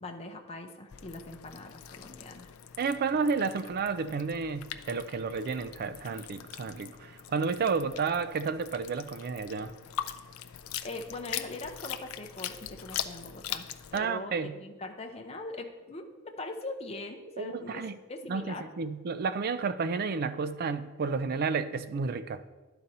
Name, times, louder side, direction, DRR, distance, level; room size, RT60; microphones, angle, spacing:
voice 1, 0.0-2.5 10.8-18.6, left 2 dB, 30° left, 0.6 m, -41 dB
sound 1, 0.9-14.0, left 10 dB, 65° left, 0.4 m, -42 dB
voice 2, 2.8-9.7 13.9-14.5 17.4-18.0 18.3-22.4, right 5 dB, 45° right, 0.4 m, -31 dB
11.0 x 4.0 x 4.2 m
head